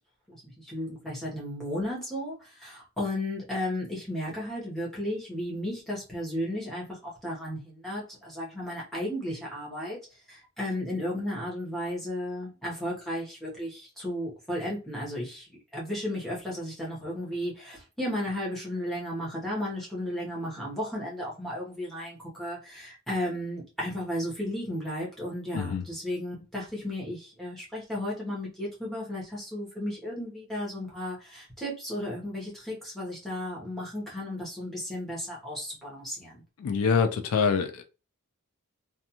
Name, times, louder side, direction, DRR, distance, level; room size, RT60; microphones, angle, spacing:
voice 1, 0.3-10.0 10.3-15.5 15.7-36.4, left 1 dB, ahead, 0.9 m, -34 dB
voice 2, 36.6-37.8, left 5 dB, 70° left, 0.3 m, -25 dB
2.4 x 2.3 x 2.8 m
head